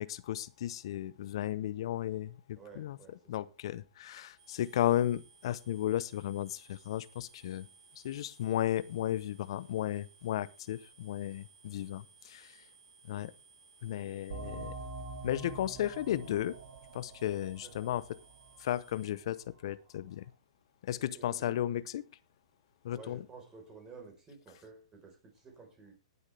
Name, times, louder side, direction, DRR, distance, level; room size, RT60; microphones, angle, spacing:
voice 1, 0.0-3.0 3.3-7.7 8.0-12.6 13.0-13.3 13.8-14.7 15.2-16.6 16.9-18.2 18.6-20.3 20.8-22.0 22.8-23.2, left 12 dB, 60° left, 18 dB, 0.8 m, -34 dB
voice 2, 2.6-3.5 14.0-14.5 17.6-18.0 21.0-21.6 22.9-26.0, right 4 dB, 15° right, 2 dB, 4.3 m, -53 dB
sound 1, 4.4-19.1, right 5 dB, 55° right, 6.1 m, -61 dB
sound 2, 14.3-19.6, right 4 dB, 70° right, 6.3 m, -46 dB
18.5 x 8.1 x 3.4 m, 0.29 s
hypercardioid pair, 140°, 3 cm